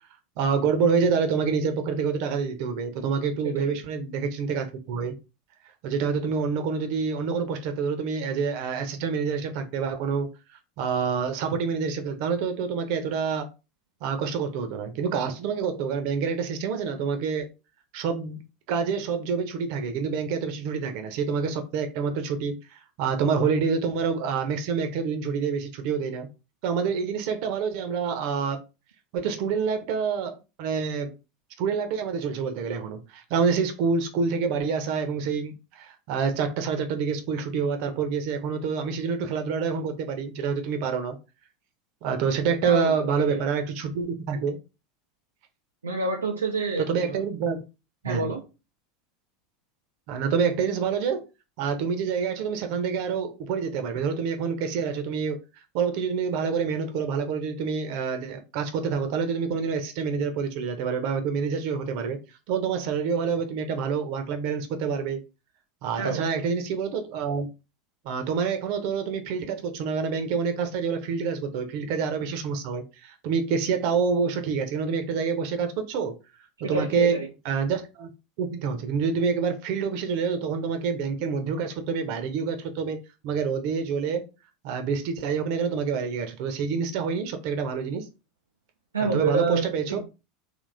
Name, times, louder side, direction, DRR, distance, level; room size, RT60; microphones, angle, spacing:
voice 1, 0.4-5.1 5.8-10.3 10.8-13.5 14.0-17.5 17.9-18.4 18.7-26.3 26.6-28.6 29.1-31.1 31.6-41.2 42.0-44.6 46.8-47.6 48.0-48.3 50.1-51.2 51.6-55.4 55.7-62.2 62.5-65.2 65.8-67.5 68.0-76.2 76.7-77.2 77.4-78.1 78.4-84.2 84.6-88.1 89.0-90.0, right 5 dB, 55° right, 0.9 m, -27 dB
voice 2, 3.4-3.8 42.6-43.4 45.8-47.2 48.0-48.4 66.0-66.2 76.6-77.3 88.9-90.1, right 4 dB, 80° right, 0.6 m, -28 dB
4.1 x 3.1 x 3.3 m
figure-of-eight pair, 80°, 0 cm